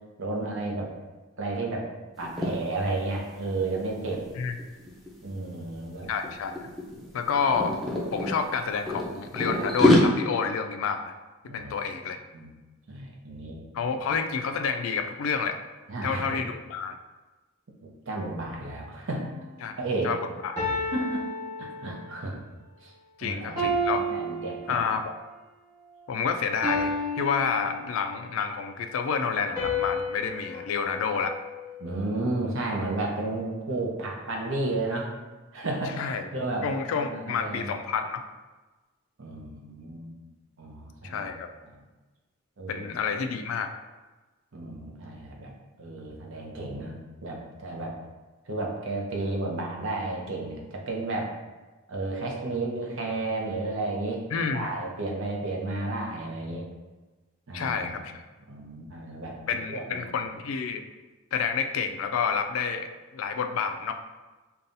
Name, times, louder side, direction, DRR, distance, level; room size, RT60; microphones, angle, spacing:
voice 1, 0.2-0.9 1.4-1.9 2.2-4.2 5.2-6.1 11.4-11.7 12.3-12.5 12.9-13.6 15.9-16.4 17.8-19.3 19.8-20.1 20.9-21.3 21.6-22.4 22.8-22.9 23.2-23.7 24.0-24.8 30.5-30.6 31.8-35.1 35.5-37.7 39.2-40.2 40.6-41.2 41.7-41.8 42.6-42.9 44.5-45.5 45.8-48.0 48.5-51.3 51.9-56.7 57.5-58.0 58.5-59.4 59.7-60.0, right 2 dB, 65° right, 0 dB, 0.7 m, -32 dB
sound 1, 2.2-2.5 2.9-3.1 3.4-5.3 6.0-6.3 6.5-8.3 8.9-10.0, left 1 dB, ahead, 0.6 m, -25 dB
voice 2, 6.1-6.7 7.1-7.7 8.1-11.1 11.4-12.2 13.7-15.6 16.0-17.0 19.6-19.7 20.0-20.2 20.4-20.8 23.2-24.1 24.7-25.1 26.1-31.3 36.0-36.3 36.6-38.2 41.0-41.5 42.7-43.7 54.3-54.7 57.5-58.2 59.5-60.8 61.3-63.9, left 6 dB, 75° left, 7 dB, 0.3 m, -29 dB
sound 2, 19.1-19.4 20.6-22.2 23.6-25.2 26.6-28.2 29.6-32.0, left 1 dB, 15° right, 1.2 m, -32 dB
5.3 x 2.3 x 2.6 m, 1.2 s
head